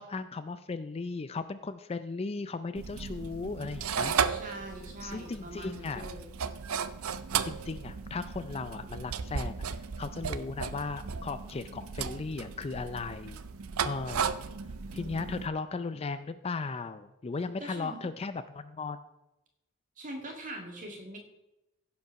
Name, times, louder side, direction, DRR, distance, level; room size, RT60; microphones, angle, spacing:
voice 1, 0.0-4.1 5.0-6.1 7.4-9.7 10.0-13.4 13.8-14.3 14.9-19.0, left 4 dB, 30° left, 12 dB, 0.4 m, -36 dB
sound 1, 2.8-15.5, right 6 dB, 80° right, 0.6 m, -35 dB
voice 2, 4.2-6.3 14.9-15.5 17.6-18.1 20.0-21.2, right 1 dB, 40° right, 2 dB, 2.1 m, -43 dB
15.5 x 5.4 x 5.8 m, 0.94 s
head